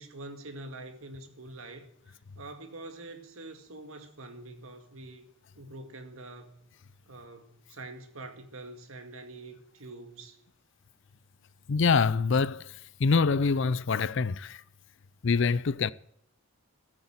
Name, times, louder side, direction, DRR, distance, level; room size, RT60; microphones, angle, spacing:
voice 1, 0.0-5.3 5.6-6.7 7.1-10.4, right 2 dB, 70° right, 2.1 m, -45 dB
voice 2, 11.7-12.7 13.0-14.6 15.2-15.9, left 5 dB, 55° left, 0.5 m, -25 dB
13.5 x 8.4 x 8.6 m
head